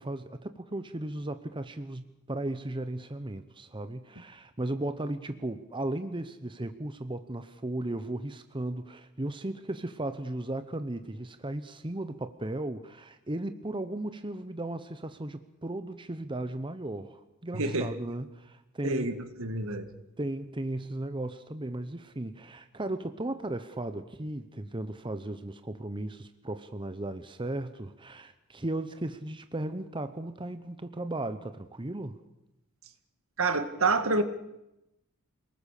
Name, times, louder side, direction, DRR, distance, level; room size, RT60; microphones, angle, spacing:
voice 1, 0.0-19.1 20.2-32.2, right 1 dB, 20° right, 10 dB, 0.9 m, -36 dB
voice 2, 17.5-17.9 18.8-19.9 33.4-34.2, right 3 dB, 65° right, 9 dB, 1.9 m, -28 dB
28.0 x 20.0 x 6.7 m, 0.89 s
head